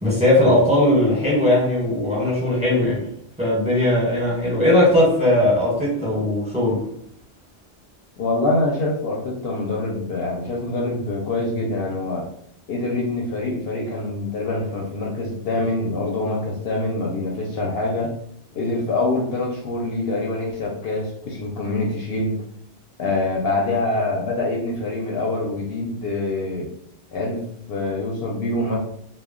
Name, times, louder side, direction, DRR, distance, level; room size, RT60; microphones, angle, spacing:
voice 1, 0.0-3.1 3.4-6.8, left 1 dB, 5° right, -5 dB, 0.9 m, -18 dB
voice 2, 8.2-12.3 12.7-18.1 18.5-22.4 23.0-26.7 27.1-27.4 27.7-28.8, left 2 dB, 65° left, -1 dB, 0.7 m, -25 dB
2.2 x 2.1 x 3.5 m, 0.70 s
omnidirectional pair, 1.2 m